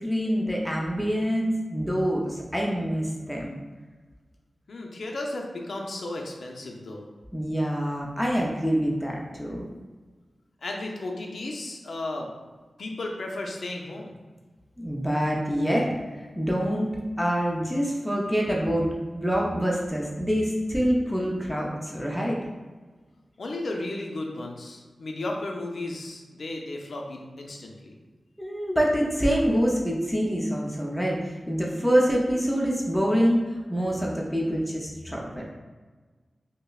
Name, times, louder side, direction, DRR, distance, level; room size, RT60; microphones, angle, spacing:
voice 1, 0.0-3.6 7.3-9.7 14.8-16.9 17.2-22.4 28.4-35.4, equal, ahead, -3 dB, 0.4 m, -26 dB
voice 2, 4.7-7.1 10.6-12.3 12.8-14.2 23.4-28.0, left 2 dB, 65° left, 1 dB, 0.5 m, -34 dB
5.2 x 2.0 x 2.3 m, 1.3 s
wide cardioid pair, 120°, 0 cm